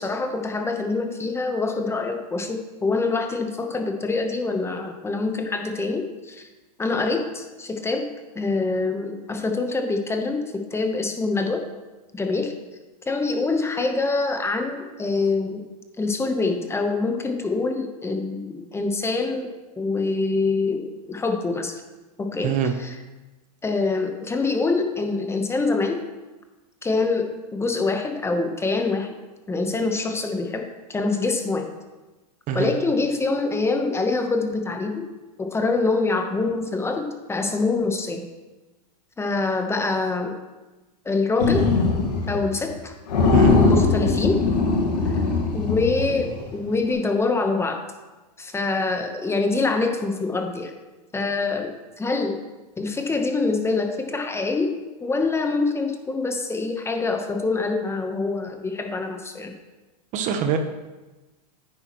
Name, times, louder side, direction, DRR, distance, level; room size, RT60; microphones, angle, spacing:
voice 1, 0.0-6.5 6.8-8.1 8.3-11.6 12.1-12.5 13.1-15.6 16.0-19.5 19.8-20.8 21.1-21.8 22.2-23.0 23.6-26.0 26.8-29.1 29.5-31.6 32.5-35.1 35.4-38.2 39.2-40.3 41.0-41.7 42.3-42.9 43.5-44.4 45.0-45.1 45.5-47.8 48.4-50.7 51.1-51.7 52.0-52.4 52.8-54.7 55.0-59.5, left 3 dB, 10° left, 5 dB, 1.1 m, -25 dB
voice 2, 22.4-22.7 32.5-32.7 43.3-43.6 60.1-60.6, right 8 dB, 40° right, 7 dB, 0.9 m, -23 dB
sound 1, 41.4-42.4 42.7-42.8 43.1-46.5, left 4 dB, 85° left, 1.8 m, -20 dB
10.0 x 8.7 x 3.1 m, 1.2 s
hypercardioid pair, 115°, 21 cm